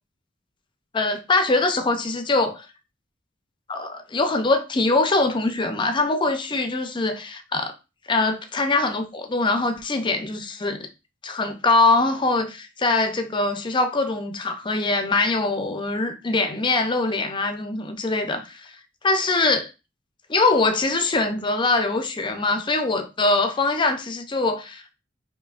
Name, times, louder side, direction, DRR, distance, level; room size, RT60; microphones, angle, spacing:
voice 1, 0.9-2.7 3.7-7.7 8.1-10.9 11.2-18.7 19.0-19.7 20.3-24.8, left 3 dB, 25° left, 0.5 m, -23 dB
5.1 x 2.7 x 2.4 m
head